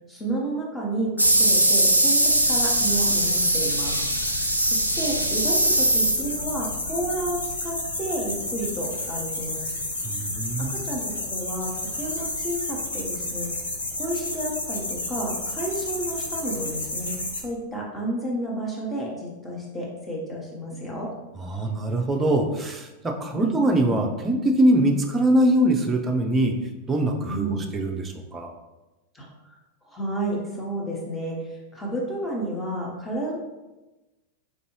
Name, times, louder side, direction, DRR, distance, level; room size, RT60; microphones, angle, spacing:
voice 1, 0.1-9.7 10.6-13.5 13.9-17.1 17.4-21.1 23.3-23.5 27.3-27.6 29.1-29.3 29.8-33.4, right 1 dB, 10° left, -3 dB, 1.0 m, -31 dB
sound 1, 1.2-6.5, right 1 dB, 85° right, 0.3 m, -21 dB
sound 2, 2.1-17.4, left 2 dB, 75° left, 0.6 m, -31 dB
voice 2, 10.0-10.8 21.4-26.5 26.9-28.5, right 1 dB, 15° right, 2 dB, 0.5 m, -23 dB
4.4 x 2.6 x 3.1 m, 1.1 s
figure-of-eight pair, 90°, 0 cm